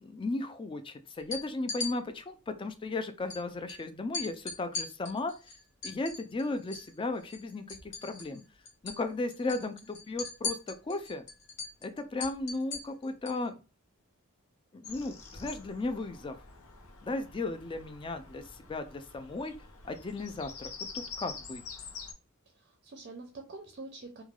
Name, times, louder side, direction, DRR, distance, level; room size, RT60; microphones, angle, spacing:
voice 1, 0.0-5.4 5.8-8.4 8.8-11.2 11.8-13.6 14.7-16.4 17.0-19.5 19.8-21.6, left 2 dB, 25° left, 9 dB, 0.3 m, -35 dB
sound 1, 1.2-1.9 3.3-3.4 3.7-3.8 4.1-6.9 7.2-8.4 8.7-9.0 9.3-13.4, left 4 dB, 60° left, 0.9 m, -39 dB
Bird vocalization bird call bird song, 14.8-22.1, left 5 dB, 90° left, 0.6 m, -46 dB
voice 2, 22.5-24.2, right 3 dB, 45° right, 3 dB, 0.5 m, -46 dB
3.1 x 2.2 x 2.3 m, 0.32 s
head